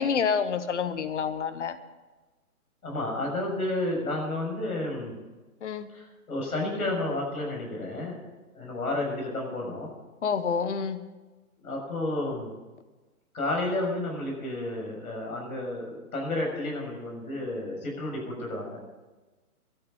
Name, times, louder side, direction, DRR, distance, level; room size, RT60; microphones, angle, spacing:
voice 1, 0.0-1.8 5.6-5.9 10.2-11.1, left 6 dB, 50° left, 12 dB, 1.1 m, -28 dB
voice 2, 2.8-5.1 5.9-8.2 8.5-9.9 11.6-12.5 13.3-18.8, left 2 dB, 70° left, 0 dB, 6.5 m, -31 dB
12.5 x 9.2 x 8.7 m, 1.2 s
hypercardioid pair, 170°, 45 cm